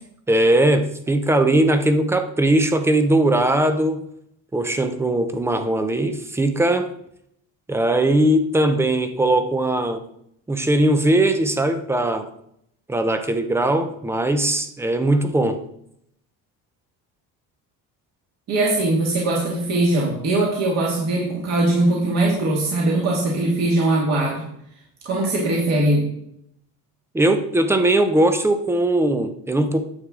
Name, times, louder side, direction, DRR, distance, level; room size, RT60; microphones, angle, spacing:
voice 1, 0.3-4.1 4.5-6.9 7.7-10.0 10.5-12.3 12.9-15.6 27.1-29.8, right 1 dB, 5° right, 8 dB, 0.5 m, -19 dB
voice 2, 18.5-24.5 25.1-26.1, right 2 dB, 45° right, -3 dB, 1.9 m, -21 dB
9.7 x 7.6 x 3.7 m, 0.73 s
cardioid pair, 170°, 37 cm